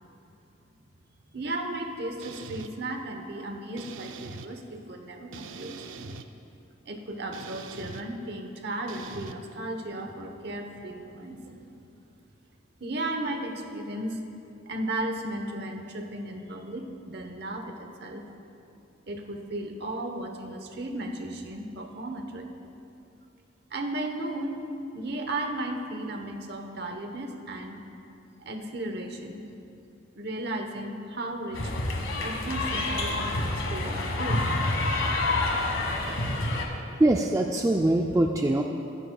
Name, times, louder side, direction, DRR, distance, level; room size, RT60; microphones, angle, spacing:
voice 1, 1.3-5.7 6.8-12.0 12.8-14.2 14.7-18.2 19.1-22.5 23.7-24.6 24.9-27.8 28.4-29.5 30.2-31.7 32.2-34.4 34.7-34.8, right 1 dB, 55° right, 4 dB, 1.0 m, -35 dB
sound 1, 2.2-2.7 3.8-4.5 5.3-6.3 7.3-8.0 8.9-9.3, right 4 dB, 75° right, 0.5 m, -42 dB
sound 2, 31.5-36.6, left 2 dB, 80° left, 1.4 m, -28 dB
voice 2, 37.0-38.6, right 1 dB, 15° right, 2 dB, 0.3 m, -23 dB
22.0 x 10.0 x 2.3 m, 2.8 s
head